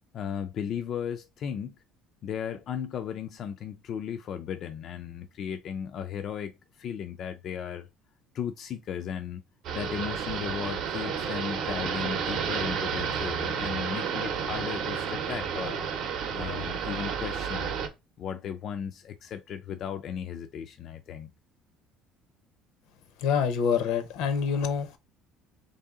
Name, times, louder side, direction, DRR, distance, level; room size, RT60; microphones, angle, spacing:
voice 1, 0.1-1.8 2.2-7.9 8.3-9.4 9.7-15.9 16.3-17.7 18.2-21.3, left 8 dB, 45° left, 0.3 m, -36 dB
sound 1, 9.6-17.9, right 7 dB, 55° right, 0.7 m, -31 dB
voice 2, 23.2-25.0, left 6 dB, 75° left, 0.7 m, -26 dB
3.6 x 2.7 x 3.5 m
cardioid pair, 160°, 0 cm